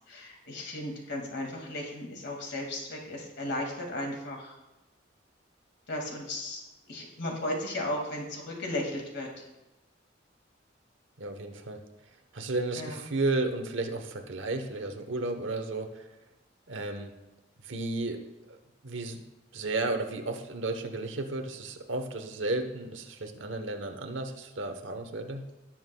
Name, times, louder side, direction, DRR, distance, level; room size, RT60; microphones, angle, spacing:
voice 1, 0.1-4.5 5.9-6.6 6.9-9.3 12.8-13.0, left 1 dB, 60° left, 1 dB, 2.1 m, -35 dB
voice 2, 11.2-11.8 12.3-16.1 16.7-17.1 17.6-18.2 18.5-18.6 18.8-19.2 19.5-25.5, right 2 dB, 70° right, 6 dB, 1.0 m, -33 dB
17.0 x 7.3 x 2.3 m, 1.0 s
head